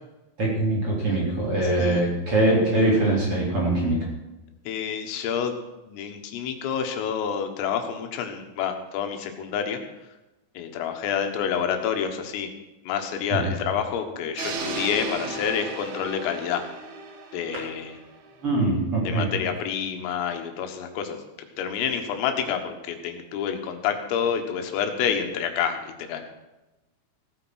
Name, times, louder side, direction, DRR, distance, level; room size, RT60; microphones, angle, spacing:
voice 1, 0.4-4.0 13.3-13.5 17.5-17.7 18.4-19.3, right 2 dB, 30° right, -4 dB, 3.9 m, -23 dB
voice 2, 1.6-2.1 4.7-5.6 5.9-9.8 10.6-12.5 12.9-16.6 17.3-18.0 19.0-26.2, left 7 dB, 85° left, 5 dB, 4.0 m, -28 dB
sound 1, 14.4-18.4, right 3 dB, 60° right, 3.1 m, -35 dB
16.5 x 9.8 x 6.3 m, 1.0 s
omnidirectional pair, 5.8 m